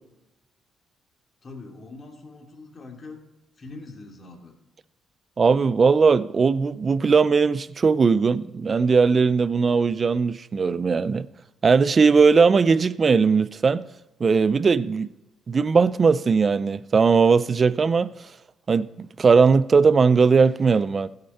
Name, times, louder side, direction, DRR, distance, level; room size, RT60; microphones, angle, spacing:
voice 1, 1.4-3.2 3.6-4.5, left 3 dB, 40° left, 2.5 m, -42 dB
voice 2, 5.4-11.3 11.6-13.9 14.2-15.1 15.5-18.1 18.7-21.1, right 5 dB, 40° right, 0.4 m, -19 dB
16.0 x 6.7 x 4.2 m
cardioid pair, 90°, 0 cm